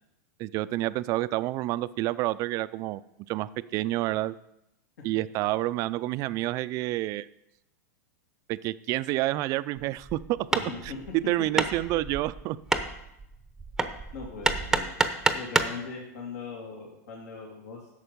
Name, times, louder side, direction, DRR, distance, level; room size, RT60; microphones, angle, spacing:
voice 1, 0.4-3.0 3.3-4.3 5.0-7.3 8.5-10.4 10.8-12.6, right 17 dB, 40° right, 16 dB, 0.4 m, -29 dB
Hammer, 9.8-15.8, right 3 dB, 5° right, 0.7 m, -29 dB
voice 2, 10.6-11.2 11.9-12.1 14.1-14.9 15.3-17.9, left 5 dB, 75° left, -2 dB, 2.5 m, -40 dB
11.5 x 7.1 x 5.2 m, 0.84 s
hypercardioid pair, 130°, 9 cm